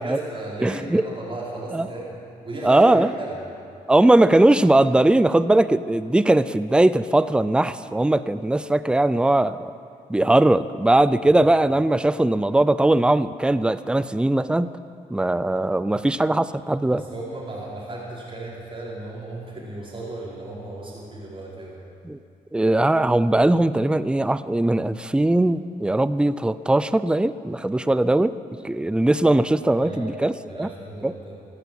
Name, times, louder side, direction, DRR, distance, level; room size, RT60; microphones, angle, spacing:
voice 1, 0.0-2.2 2.4-3.4 11.2-11.4 15.9-16.0 16.9-21.8 29.8-30.1 30.5-31.3, right 2 dB, 35° right, -7 dB, 4.6 m, -35 dB
voice 2, 0.6-1.1 1.7-1.9 2.6-3.1 3.9-9.7 10.1-14.7 15.1-17.0 22.0-22.2 22.5-28.3 28.6-30.7 31.0-31.1, right 1 dB, 5° right, 15 dB, 0.5 m, -20 dB
15.0 x 10.0 x 7.8 m, 2.7 s
cardioid pair, 70°, 16 cm